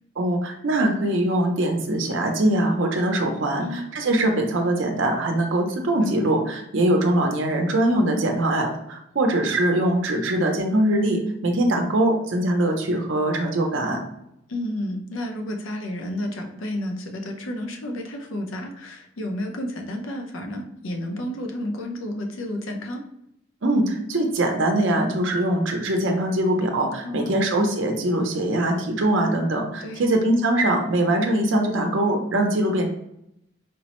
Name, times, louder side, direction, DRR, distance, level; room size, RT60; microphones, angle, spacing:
voice 1, 0.2-14.0 23.6-32.9, right 1 dB, 70° right, 2 dB, 0.6 m, -22 dB
voice 2, 6.0-6.5 14.5-23.0 27.0-27.5 29.8-30.1, left 1 dB, 85° left, 3 dB, 0.6 m, -31 dB
4.5 x 2.0 x 2.9 m, 0.79 s
head